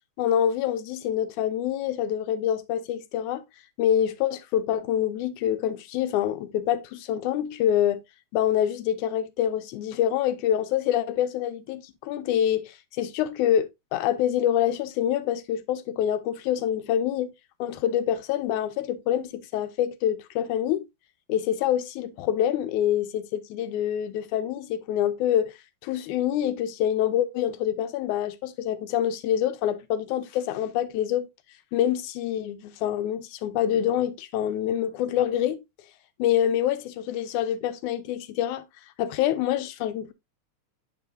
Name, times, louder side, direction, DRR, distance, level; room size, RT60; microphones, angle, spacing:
voice 1, 0.2-3.4 3.8-8.0 8.3-17.3 17.6-20.9 21.3-25.5 25.8-31.3 31.7-35.6 36.2-38.7 39.0-40.1, left 10 dB, 85° left, 2.1 m, -26 dB
8.8 x 5.3 x 2.6 m
omnidirectional pair, 3.5 m